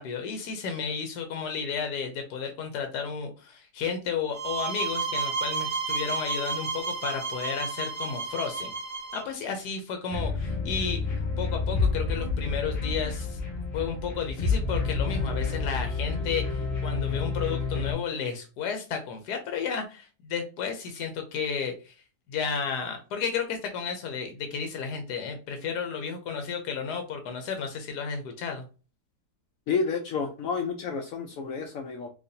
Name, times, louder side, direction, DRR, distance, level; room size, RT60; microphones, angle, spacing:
voice 1, 0.0-8.7 9.1-13.4 13.7-21.9 22.3-28.6, left 6 dB, 85° left, 5 dB, 1.2 m, -32 dB
sound 1, 4.3-9.2, right 4 dB, 40° right, 1.3 m, -32 dB
sound 2, 10.1-17.9, left 4 dB, 45° left, 1.2 m, -29 dB
voice 2, 29.7-32.1, left 5 dB, 70° left, 4 dB, 0.9 m, -30 dB
4.0 x 2.9 x 2.6 m, 0.34 s
omnidirectional pair, 1.7 m